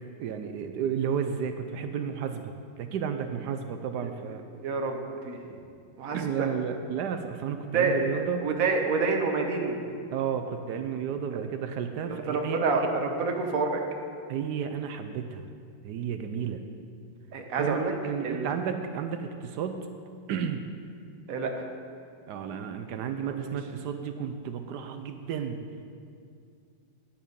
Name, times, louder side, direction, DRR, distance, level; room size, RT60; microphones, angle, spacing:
voice 1, 0.2-2.5 2.8-4.4 6.1-8.4 10.1-13.0 14.3-15.4 15.8-16.6 17.6-19.8 20.3-20.6 22.3-25.6, right 7 dB, 70° right, 7 dB, 1.0 m, -32 dB
voice 2, 4.6-5.0 5.2-5.4 6.0-6.5 7.7-9.8 12.1-13.8 17.3-17.9 18.2-18.5 21.3-21.5 23.2-23.6, right 4 dB, 50° right, 3 dB, 1.3 m, -28 dB
10.0 x 9.5 x 5.3 m, 2.3 s
omnidirectional pair, 2.1 m